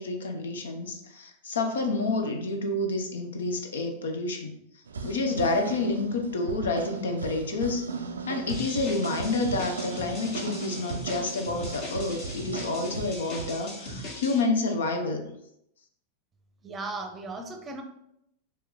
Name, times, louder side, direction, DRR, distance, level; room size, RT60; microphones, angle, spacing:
voice 1, 0.0-4.6 5.0-7.9 8.3-15.3, left 3 dB, 65° left, 5 dB, 0.7 m, -29 dB
sound 1, 4.9-13.5, right 5 dB, 70° right, 0.4 m, -37 dB
sound 2, 8.5-14.4, left 1 dB, 45° left, 1.3 m, -39 dB
voice 2, 16.6-17.8, right 3 dB, 20° right, 5 dB, 0.7 m, -36 dB
4.5 x 3.1 x 3.7 m, 0.78 s
figure-of-eight pair, 90°, 0 cm